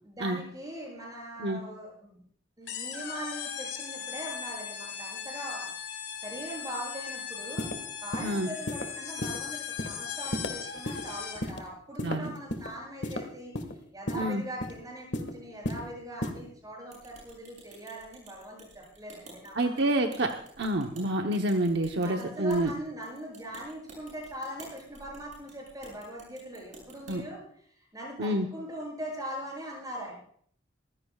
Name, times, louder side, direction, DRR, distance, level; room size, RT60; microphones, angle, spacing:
voice 1, 0.0-2.2 2.6-7.7 8.0-13.5 13.9-19.8 22.0-30.1, equal, 20° right, -2 dB, 7.7 m, -41 dB
sound 1, 2.7-11.6, left 7 dB, 85° left, 3.1 m, -38 dB
sound 2, 7.6-7.7 8.1-8.3 8.7-8.8 9.2-9.4 9.8-9.9 10.3-10.5 10.9-11.0 11.4-11.6 12.0-12.7 13.0-13.2 13.5-13.7 14.1-14.2 14.6-14.8 15.1-15.3 15.6-15.8 16.2-16.4, left 1 dB, 70° left, 1.7 m, -32 dB
sound 3, 16.9-27.2, right 2 dB, 45° right, 7.7 m, -52 dB
voice 2, 19.6-22.7 27.1-27.2 28.2-28.5, right 1 dB, 65° right, 3 dB, 0.9 m, -28 dB
24.0 x 15.5 x 2.4 m, 0.62 s
head